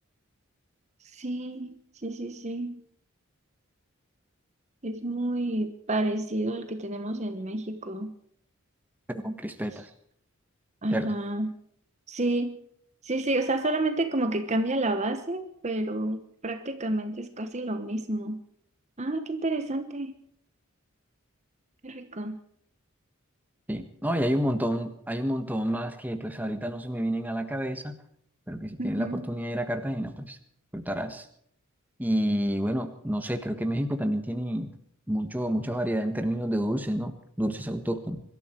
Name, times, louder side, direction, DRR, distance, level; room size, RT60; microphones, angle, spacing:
voice 1, 1.1-1.8 2.0-2.8 4.8-8.1 10.8-11.5 12.1-12.6 13.0-18.4 19.0-20.1 21.8-22.4 28.8-29.3, right 2 dB, 30° right, 8 dB, 1.2 m, -30 dB
voice 2, 9.2-9.9 10.9-11.1 23.7-28.0 28.5-30.4 30.7-31.2 32.0-34.7 35.1-38.2, equal, 10° right, 7 dB, 1.4 m, -29 dB
24.0 x 13.0 x 4.5 m, 0.66 s
head